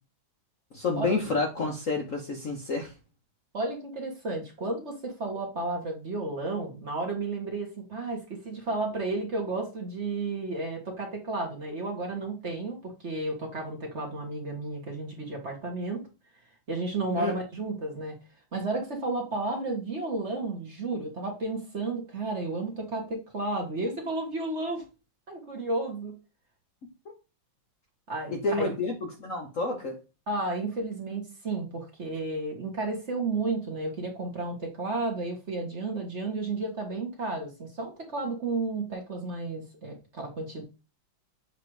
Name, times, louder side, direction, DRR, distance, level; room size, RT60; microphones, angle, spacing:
voice 1, 0.7-2.9 17.2-17.3 28.3-30.0, left 3 dB, 50° left, 1.1 m, -29 dB
voice 2, 3.5-16.0 16.7-18.1 18.5-24.8 25.3-26.1 28.1-28.7 30.3-40.6, right 2 dB, 35° right, 1.5 m, -32 dB
7.5 x 3.0 x 4.7 m
omnidirectional pair, 2.2 m